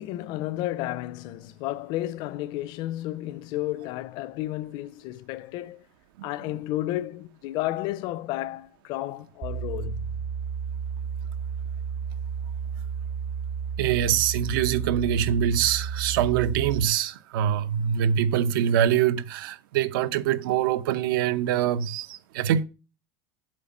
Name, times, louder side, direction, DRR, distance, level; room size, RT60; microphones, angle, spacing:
voice 1, 0.0-5.8 6.2-10.2, left 15 dB, 40° left, 0.4 m, -32 dB
sound 1, 9.4-16.8, right 7 dB, 25° right, 0.5 m, -32 dB
voice 2, 13.8-22.6, right 9 dB, 90° right, 0.7 m, -24 dB
7.7 x 5.3 x 7.1 m
cardioid pair, 175°, 11 cm